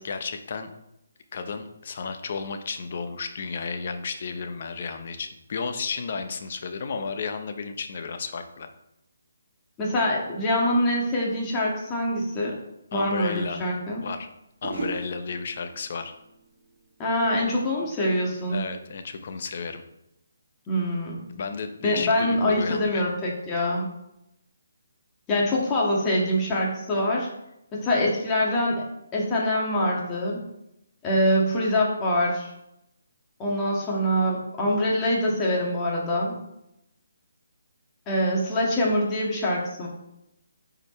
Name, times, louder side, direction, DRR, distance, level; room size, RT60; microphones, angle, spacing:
voice 1, 0.0-0.7 1.3-8.7 12.9-13.6 14.0-14.3 14.6-16.1 18.5-19.8 21.3-23.1, left 5 dB, 50° left, 7 dB, 0.9 m, -33 dB
voice 2, 9.8-12.6 12.9-14.0 17.0-18.7 20.7-21.2 21.8-23.8 25.3-27.3 27.7-28.8 29.1-30.4 31.0-32.5 33.4-36.3 38.1-39.9, left 1 dB, 20° left, -3 dB, 1.9 m, -24 dB
sound 1, 14.6-17.7 18.0-18.5, right 2 dB, 65° right, 2.4 m, -39 dB
8.9 x 5.1 x 3.2 m, 0.84 s
figure-of-eight pair, 155°, 0 cm